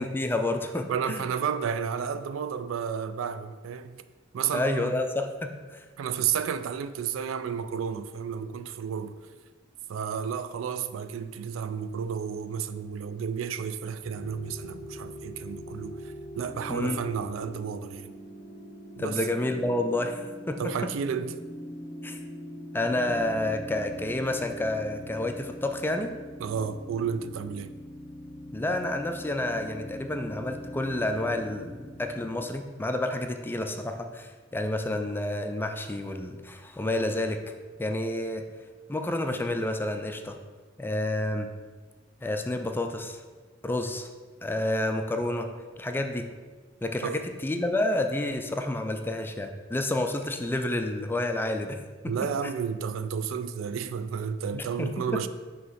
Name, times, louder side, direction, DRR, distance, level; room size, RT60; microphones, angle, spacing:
voice 1, 0.0-1.3 4.5-5.8 16.7-17.0 19.0-20.2 20.5-20.6 22.0-22.2 22.7-26.1 28.5-37.4 37.8-38.4 38.9-40.4 40.8-41.5 42.2-43.2 43.6-44.1 44.4-45.5 45.8-46.3 46.8-52.1 54.5-55.2, left 1 dB, 10° left, 0.4 m, -29 dB
voice 2, 0.9-4.0 4.3-4.9 6.0-9.2 9.9-18.1 19.0-19.2 20.6-21.4 26.4-27.7 47.0-47.2 52.0-55.3, right 7 dB, 90° right, 0.3 m, -32 dB
sound 1, 14.0-32.5, equal, 35° left, 1.1 m, -42 dB
5.6 x 3.1 x 5.5 m
head